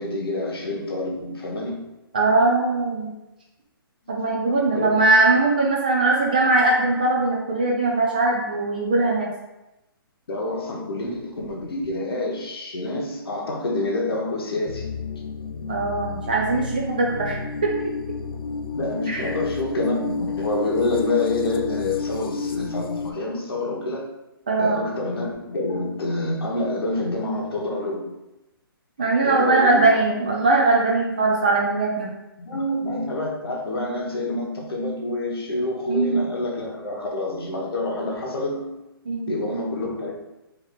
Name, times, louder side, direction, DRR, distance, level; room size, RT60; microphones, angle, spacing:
voice 1, 0.0-1.8 4.1-4.4 4.7-5.1 10.3-14.9 18.7-24.1 24.6-28.1 29.2-30.3 32.4-38.8 39.3-40.1, left 2 dB, 85° left, -2 dB, 1.1 m, -27 dB
voice 2, 2.1-3.1 4.1-9.3 15.7-17.9 19.1-19.3 24.5-24.8 29.0-32.1 35.9-36.2 39.1-39.3, right 3 dB, 20° right, -2 dB, 0.3 m, -20 dB
sound 1, 14.7-23.1, left 5 dB, 70° left, 0.4 m, -31 dB
3.5 x 2.7 x 3.9 m, 0.96 s
hypercardioid pair, 175°, 12 cm